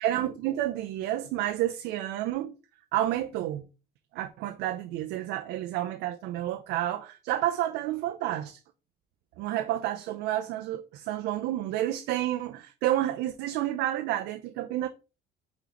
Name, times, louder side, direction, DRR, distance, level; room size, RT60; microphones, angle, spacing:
voice 1, 0.0-2.5 2.9-3.7 4.1-8.6 9.4-14.9, right 13 dB, 90° right, 0.4 m, -30 dB
4.5 x 3.9 x 2.9 m
cardioid pair, 110°, 17 cm